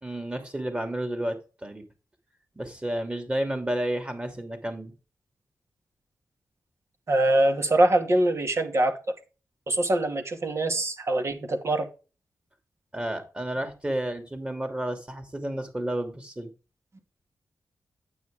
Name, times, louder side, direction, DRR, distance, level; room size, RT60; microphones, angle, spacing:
voice 1, 0.0-1.8 2.5-4.9 12.9-16.5, right 1 dB, 20° right, 6 dB, 2.8 m, -31 dB
voice 2, 7.1-8.9 9.7-11.9, right 1 dB, 50° right, 5 dB, 2.3 m, -23 dB
9.2 x 8.3 x 3.7 m, 0.32 s
wide cardioid pair, 90°, 6 cm